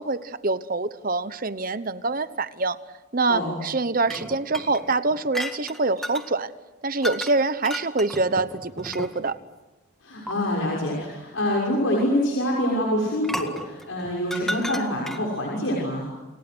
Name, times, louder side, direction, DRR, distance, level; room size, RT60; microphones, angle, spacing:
voice 1, 0.0-2.8 3.1-6.5 6.8-9.4, right 3 dB, 40° right, 13 dB, 1.0 m, -25 dB
sound 1, 4.1-6.3 7.0-7.4 7.7-9.4 10.3-10.4 13.2-15.4, equal, ahead, 1.8 m, -34 dB
voice 2, 10.0-16.0, left 1 dB, 70° left, -3 dB, 6.3 m, -25 dB
30.0 x 29.5 x 6.3 m, 1.1 s
head